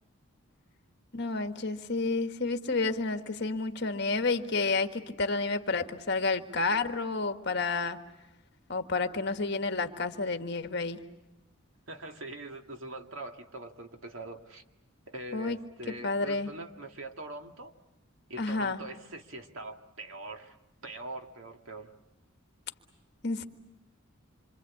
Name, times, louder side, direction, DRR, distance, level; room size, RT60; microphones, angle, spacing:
voice 1, 1.1-8.0 8.7-11.0 15.3-15.6 15.9-16.5 18.4-18.8 23.2-23.5, left 3 dB, 50° left, 7 dB, 1.5 m, -30 dB
voice 2, 11.9-14.6 15.1-17.7 18.3-20.5 20.8-21.9, right 2 dB, 70° right, 5 dB, 2.1 m, -43 dB
27.0 x 25.5 x 8.5 m, 0.94 s
head